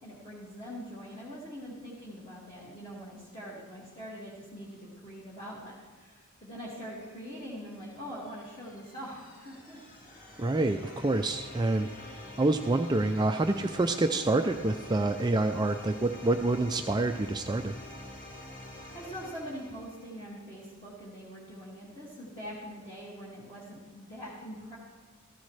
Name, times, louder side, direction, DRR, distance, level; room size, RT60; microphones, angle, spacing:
voice 1, 0.0-9.8 18.9-24.8, equal, 20° left, -9 dB, 2.1 m, -43 dB
sound 1, 6.7-20.5, left 1 dB, 40° left, 1.8 m, -47 dB
voice 2, 10.4-17.7, right 2 dB, 20° right, 6 dB, 0.3 m, -27 dB
14.5 x 14.0 x 3.2 m, 1.4 s
head